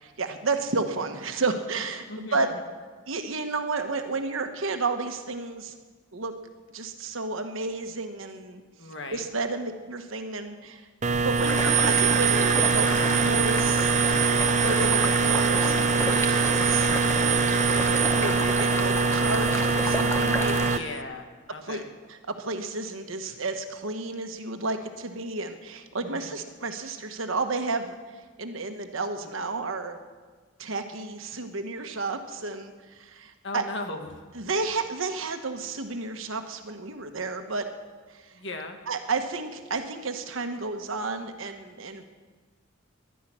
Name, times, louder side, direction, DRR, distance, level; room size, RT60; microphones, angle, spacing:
voice 1, 0.2-2.5 3.1-5.7 6.1-6.3 6.7-8.6 9.1-10.9 11.2-13.9 14.6-16.9 17.7-20.8 21.6-21.8 22.1-27.9 28.4-30.0 30.6-33.6 34.3-37.6 38.1-38.4 38.9-42.1, right 3 dB, 75° right, 6 dB, 1.3 m, -32 dB
voice 2, 2.1-2.4 8.8-9.2 20.7-21.9 26.0-26.3 33.4-34.2 38.3-38.8, left 2 dB, 60° left, 5 dB, 1.6 m, -37 dB
sound 1, 11.0-20.8, right 5 dB, 35° right, 0.5 m, -23 dB
sound 2, 11.5-20.8, left 1 dB, 10° left, 0.9 m, -31 dB
11.5 x 10.5 x 10.0 m, 1.4 s
head